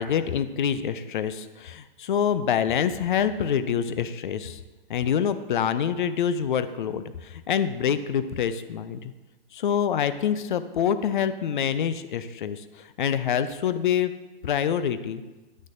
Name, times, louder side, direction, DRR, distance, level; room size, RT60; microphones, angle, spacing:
voice 1, 0.0-4.6 4.9-9.1 9.5-14.1 14.4-15.2, left 8 dB, 55° left, 12 dB, 0.6 m, -26 dB
9.4 x 8.7 x 2.6 m, 1.2 s
figure-of-eight pair, 125°, 30 cm